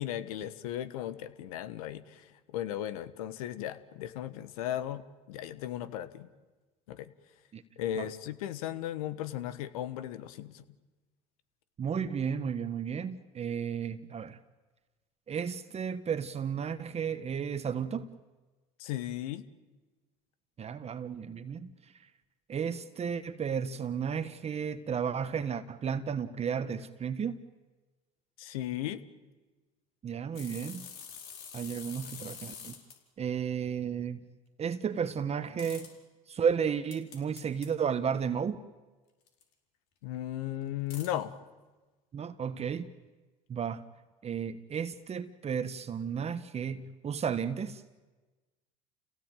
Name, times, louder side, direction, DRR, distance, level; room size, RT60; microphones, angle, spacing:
voice 1, 0.0-6.3 6.9-7.1 7.8-10.6 18.8-19.5 28.4-29.0 40.0-41.3, left 12 dB, 80° left, 13 dB, 1.4 m, -36 dB
voice 2, 11.8-14.4 15.3-18.1 20.6-21.7 22.5-27.4 30.0-30.9 31.5-32.7 33.2-34.2 34.6-35.9 36.3-38.6 42.1-42.9 43.5-43.8 44.2-47.8, right 7 dB, 35° right, 11 dB, 1.3 m, -33 dB
sound 1, 30.3-33.0 35.6-35.9 36.9-37.7 39.3-39.4 40.9-41.1, left 7 dB, 65° left, 4.7 m, -45 dB
29.5 x 17.0 x 9.2 m, 1.2 s
hypercardioid pair, 80°, 18 cm